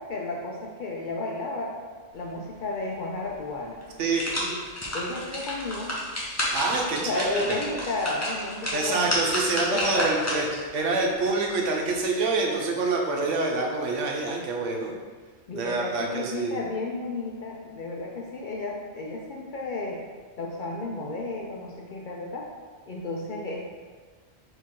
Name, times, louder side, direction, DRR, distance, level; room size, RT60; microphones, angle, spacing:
voice 1, 0.0-1.8 2.1-3.8 4.4-4.6 4.9-5.9 6.9-9.3 9.6-10.4 15.5-20.0 20.4-22.5 22.9-23.7, left 2 dB, 60° left, -2 dB, 0.5 m, -33 dB
sound 1, 3.3-3.4 3.8-10.7 11.1-11.2, equal, 15° left, 0.7 m, -31 dB
voice 2, 4.0-4.3 6.5-7.6 8.7-10.5 10.7-14.9 15.5-16.7, right 3 dB, 85° right, 0 dB, 1.0 m, -26 dB
4.6 x 2.9 x 3.7 m, 1.5 s
omnidirectional pair, 1.2 m